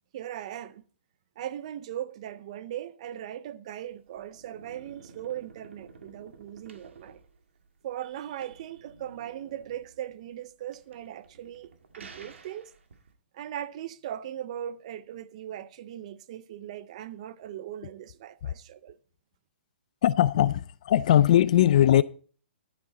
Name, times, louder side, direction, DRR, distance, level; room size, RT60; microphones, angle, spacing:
voice 1, 0.1-0.8 1.4-7.2 7.8-11.7 12.0-12.7 13.3-19.0, right 11 dB, 30° right, 0.5 m, -39 dB
sound 1, 3.9-13.1, right 4 dB, 90° right, 1.9 m, -52 dB
voice 2, 20.0-22.0, left 11 dB, 40° left, 0.4 m, -20 dB
11.0 x 9.6 x 3.9 m
hypercardioid pair, 170°, 6 cm